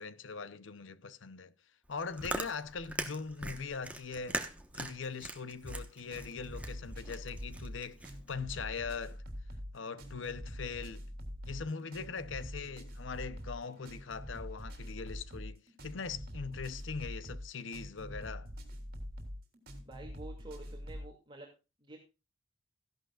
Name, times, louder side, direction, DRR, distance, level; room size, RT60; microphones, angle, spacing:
voice 1, 0.0-1.5 1.9-4.4 4.7-9.2 9.7-11.1 11.4-18.5, left 5 dB, 70° left, 0.7 m, -41 dB
Chewing mastication, 1.9-8.3, right 2 dB, 5° right, 1.1 m, -41 dB
sound 1, 5.6-21.1, equal, 50° right, 3.3 m, -44 dB
voice 2, 19.8-21.5 21.8-22.0, right 2 dB, 25° right, 2.5 m, -49 dB
15.0 x 11.5 x 2.4 m
head